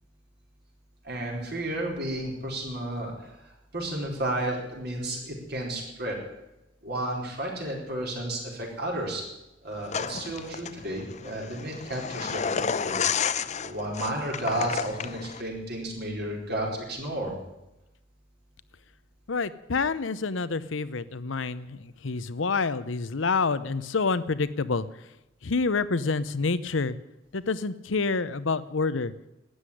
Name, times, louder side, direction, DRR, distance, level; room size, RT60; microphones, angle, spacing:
voice 1, 1.0-6.2 6.8-9.2 9.6-13.3 13.5-17.3, right 1 dB, 55° right, -1 dB, 4.7 m, -32 dB
sound 1, 9.9-15.4, left 6 dB, 35° left, 0.6 m, -31 dB
voice 2, 19.3-24.8 25.4-27.0 27.3-29.1, left 4 dB, 80° left, 15 dB, 0.8 m, -28 dB
12.5 x 9.7 x 10.0 m, 0.95 s
head